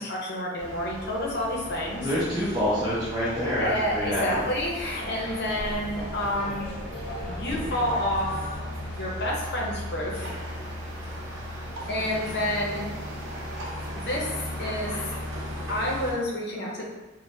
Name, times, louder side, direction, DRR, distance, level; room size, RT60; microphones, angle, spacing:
voice 1, 0.0-2.1 3.3-6.7 7.2-8.6 9.0-10.3 11.9-12.9 13.9-14.9 15.7-16.8, left 1 dB, 60° left, -2 dB, 0.7 m, -29 dB
sound 1, 0.6-16.1, equal, 80° right, 0.6 m, -37 dB
voice 2, 2.0-4.4, equal, 25° right, -13 dB, 0.8 m, -26 dB
sound 2, 3.6-9.1, equal, 30° left, 0.9 m, -39 dB
3.2 x 2.1 x 2.6 m, 1.1 s
head